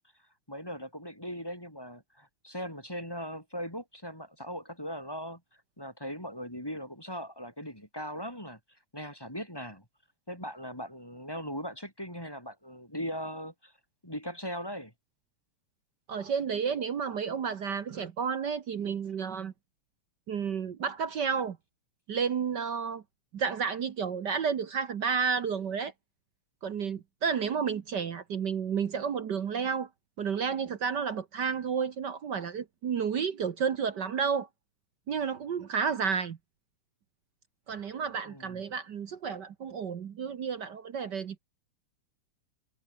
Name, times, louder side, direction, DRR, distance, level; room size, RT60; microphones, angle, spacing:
voice 1, 0.5-5.4 5.8-8.6 8.9-9.8 10.3-13.7 14.0-14.9 38.3-38.6, equal, 5° left, 5.2 m, -39 dB
voice 2, 16.1-19.5 20.3-21.6 22.1-23.0 23.3-25.9 26.6-29.9 30.2-34.5 35.1-36.4 37.7-41.4, right 6 dB, 60° right, 1.1 m, -31 dB
omnidirectional pair, 3.4 m